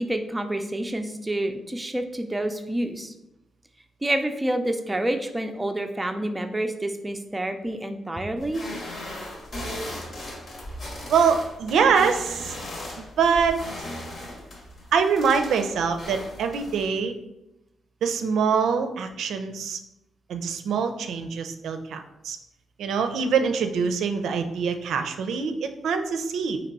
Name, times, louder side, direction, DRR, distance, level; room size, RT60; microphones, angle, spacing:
voice 1, 0.0-3.1 4.0-8.6, right 1 dB, 10° right, 5 dB, 0.5 m, -28 dB
sound 1, 8.4-16.9, left 1 dB, 50° left, 1.1 m, -37 dB
voice 2, 11.1-12.5 13.0-13.6 14.9-17.1 18.0-19.8 20.3-22.4 22.8-26.6, right 6 dB, 85° right, 7 dB, 0.4 m, -24 dB
3.9 x 2.9 x 4.6 m, 0.91 s
cardioid pair, 95°, 0 cm